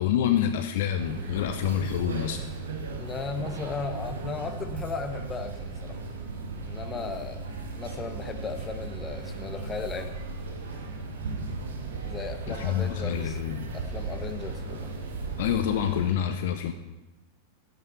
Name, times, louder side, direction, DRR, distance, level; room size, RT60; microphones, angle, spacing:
voice 1, 0.0-2.4 12.5-13.7 15.4-16.7, left 10 dB, 55° left, 8 dB, 0.8 m, -27 dB
sound 1, 1.0-16.1, right 3 dB, 65° right, 1.9 m, -36 dB
voice 2, 3.0-6.0 6.7-7.5 7.7-10.2 12.0-13.4 13.7-14.9, left 4 dB, 20° left, 8 dB, 1.3 m, -36 dB
12.0 x 9.2 x 5.7 m, 1.1 s
figure-of-eight pair, 90°, 0 cm